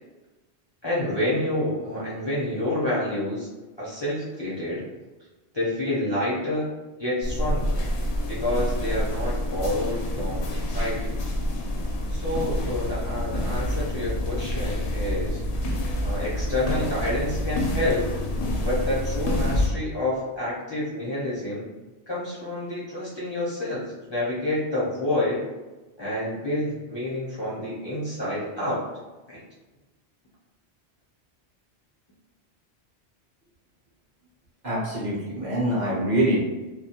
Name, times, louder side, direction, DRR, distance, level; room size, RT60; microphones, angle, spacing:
voice 1, 0.8-3.5 3.8-4.9 5.5-6.7 7.0-7.8 8.3-11.1 12.1-15.4 16.0-18.0 18.6-21.7 22.1-25.4 26.0-28.8 29.3-29.4, left 1 dB, 30° left, -9 dB, 0.5 m, -28 dB
sound 1, 7.2-19.7, left 1 dB, 90° left, 0.9 m, -27 dB
voice 2, 34.6-36.4, right 1 dB, 50° right, -6 dB, 0.7 m, -24 dB
2.2 x 2.2 x 2.7 m, 1.1 s
omnidirectional pair, 1.1 m